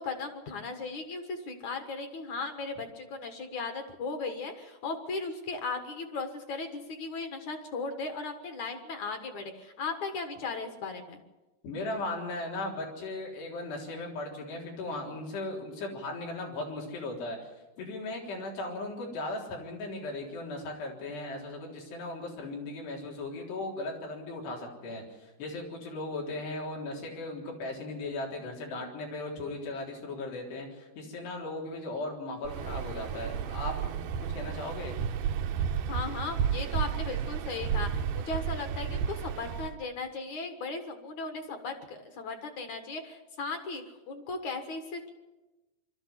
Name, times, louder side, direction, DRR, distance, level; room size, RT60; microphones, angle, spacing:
voice 1, 0.0-11.2 35.9-45.1, left 4 dB, 55° left, 6 dB, 2.4 m, -37 dB
voice 2, 11.6-17.5 17.8-34.9, left 2 dB, 90° left, -1 dB, 5.8 m, -37 dB
Waves surf, 32.4-39.8, right 8 dB, 75° right, 2.7 m, -32 dB
22.5 x 13.0 x 10.0 m, 1.1 s
omnidirectional pair, 4.7 m